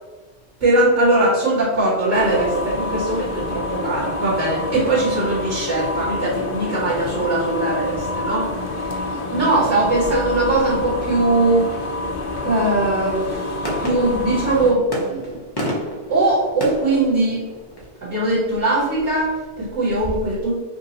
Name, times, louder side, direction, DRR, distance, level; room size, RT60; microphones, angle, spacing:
voice 1, 0.6-12.0 12.4-15.4 16.1-17.4 18.0-20.5, right 2 dB, 80° right, -9 dB, 1.7 m, -20 dB
sound 1, 2.1-14.7, left 2 dB, 60° left, 0.7 m, -27 dB
sound 2, 6.5-18.0, equal, 25° left, 0.7 m, -35 dB
5.3 x 2.4 x 2.9 m, 1.3 s
omnidirectional pair, 1.1 m